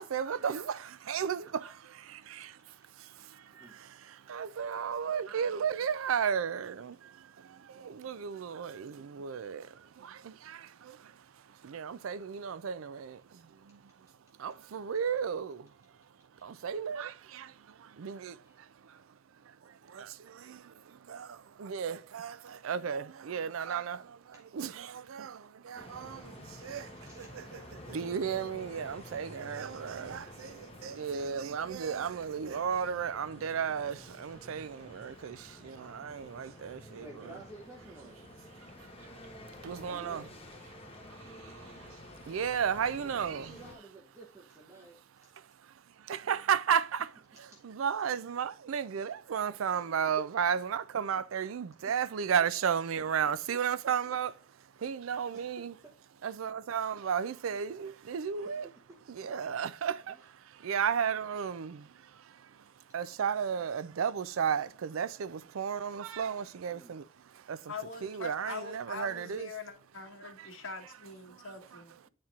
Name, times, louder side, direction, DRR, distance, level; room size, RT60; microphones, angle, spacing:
voice 1, 0.0-1.7 2.3-2.5 4.3-6.9 7.8-9.6 10.5-10.6 11.6-13.2 14.4-15.6 16.4-17.5 18.0-18.3 19.9-20.1 20.5-20.6 21.1-21.3 21.6-24.0 24.5-25.4 25.7-26.2 26.6-26.9 27.2-27.6 27.9-30.5 30.8-35.4 35.6-37.4 39.6-40.2 42.3-43.5 46.1-47.1 47.6-54.3 54.8-55.7 56.2-58.7 59.1-60.1 60.6-61.8 62.9-67.0 67.5-67.6 68.0-69.5, right 7 dB, 85° right, 0.4 m, -33 dB
voice 2, 18.1-18.7 24.3-24.4 27.0-27.3 34.4-35.2 37.0-38.3 39.8-40.3 42.9-45.3 47.3-47.6 50.0-50.3 51.8-52.2 55.3-55.9 58.4-59.3 60.1-60.2 66.7-67.0, right 1 dB, 15° right, 0.9 m, -53 dB
sound 1, 25.8-43.8, left 1 dB, 30° left, 1.2 m, -50 dB
voice 3, 67.7-71.9, left 3 dB, 65° left, 1.5 m, -43 dB
9.4 x 4.3 x 2.4 m
head